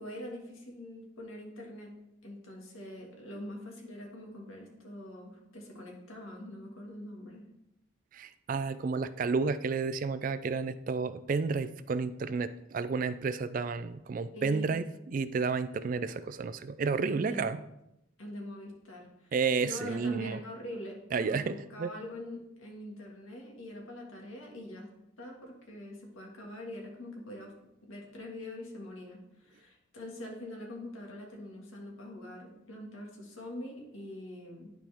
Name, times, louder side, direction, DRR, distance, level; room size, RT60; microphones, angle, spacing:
voice 1, 0.0-1.9 2.2-7.4 14.3-14.7 17.1-17.5 18.2-19.3 19.6-24.9 25.2-27.5 27.8-34.7, left 1 dB, 80° left, 0 dB, 1.8 m, -44 dB
voice 2, 8.1-17.6 19.3-20.4 21.1-21.9, right 4 dB, 40° right, 13 dB, 0.3 m, -31 dB
11.0 x 4.5 x 3.5 m, 0.85 s
head